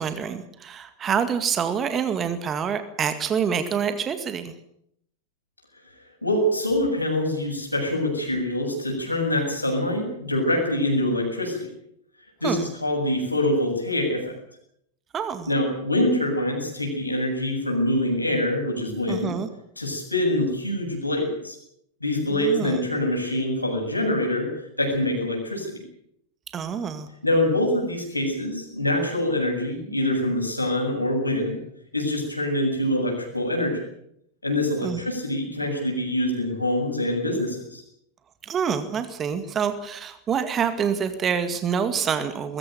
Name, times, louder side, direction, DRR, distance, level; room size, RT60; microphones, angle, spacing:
voice 1, 0.0-4.5 12.4-12.7 15.1-15.5 19.1-19.5 22.3-22.8 26.5-27.1 34.8-35.0 38.4-42.6, right 7 dB, 25° right, 10 dB, 2.1 m, -26 dB
voice 2, 6.2-11.7 12.4-14.3 15.5-19.3 19.8-21.6 22.0-24.5 24.8-25.8 27.2-31.6 31.9-33.8 34.4-37.8, left 1 dB, 85° left, 1 dB, 7.7 m, -25 dB
21.5 x 15.5 x 9.3 m, 0.74 s
figure-of-eight pair, 90°, 0 cm